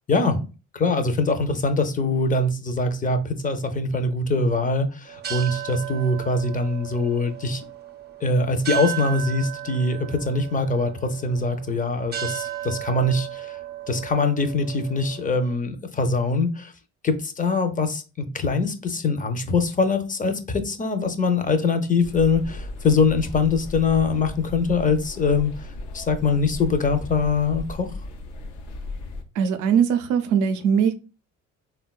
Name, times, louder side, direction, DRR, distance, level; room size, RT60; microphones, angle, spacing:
voice 1, 0.1-0.5 0.7-7.6 8.2-13.6 13.9-16.7 17.0-25.5 25.9-27.9, left 3 dB, 25° left, 0.5 m, -23 dB
sound 1, 5.1-15.5, right 13 dB, 35° right, 0.5 m, -35 dB
sound 2, 22.0-29.2, left 2 dB, 90° left, 0.5 m, -36 dB
voice 2, 29.4-30.9, right 7 dB, 90° right, 0.5 m, -20 dB
3.6 x 2.2 x 2.3 m
cardioid pair, 90°, 30 cm